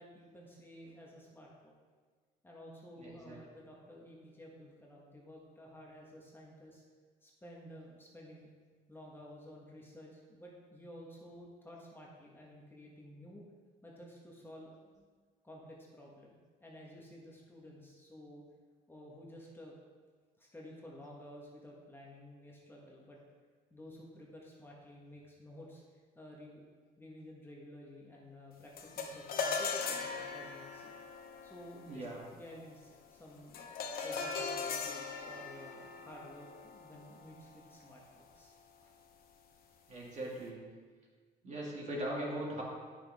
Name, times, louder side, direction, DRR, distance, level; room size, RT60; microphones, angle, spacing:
voice 1, 0.0-1.7 2.4-6.8 7.2-8.5 8.9-13.4 13.8-14.8 15.4-18.4 18.9-19.8 20.4-23.2 23.7-25.8 26.1-26.6 27.0-30.9 31.4-33.7 34.0-38.5 38.8-38.9, left 1 dB, 15° left, -3 dB, 1.4 m, -53 dB
voice 2, 2.9-3.4 31.8-32.2 39.9-40.6 41.4-42.6, right 1 dB, 45° right, -3 dB, 2.4 m, -40 dB
sound 1, 28.8-38.3, left 5 dB, 60° left, 1.0 m, -40 dB
9.9 x 6.1 x 3.6 m, 1.5 s
cardioid pair, 110°, 17 cm